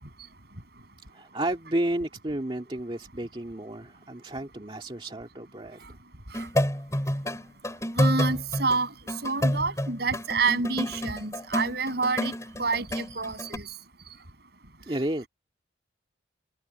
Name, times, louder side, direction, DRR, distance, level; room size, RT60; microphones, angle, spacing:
voice 1, 1.1-5.9 14.8-15.3, right 1 dB, 30° right, 2.0 m, -32 dB
sound 1, 6.3-13.6, equal, 15° left, 4.7 m, -29 dB
voice 2, 8.0-8.9 9.2-12.3 12.6-13.6, right 4 dB, 60° right, 7.5 m, -28 dB
head